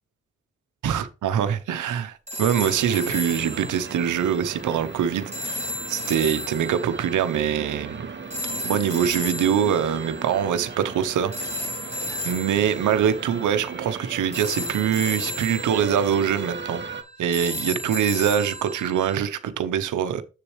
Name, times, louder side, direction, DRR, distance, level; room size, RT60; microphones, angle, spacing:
voice 1, 0.8-5.6 5.9-8.1 8.6-11.3 12.2-16.8 17.2-20.2, right 9 dB, 85° right, 0.8 m, -24 dB
sound 1, 2.3-19.2, left 1 dB, 20° right, 2.3 m, -35 dB
sound 2, 2.6-17.0, right 4 dB, 40° right, 1.3 m, -37 dB
7.6 x 6.9 x 3.2 m
supercardioid pair, 40°, 30 cm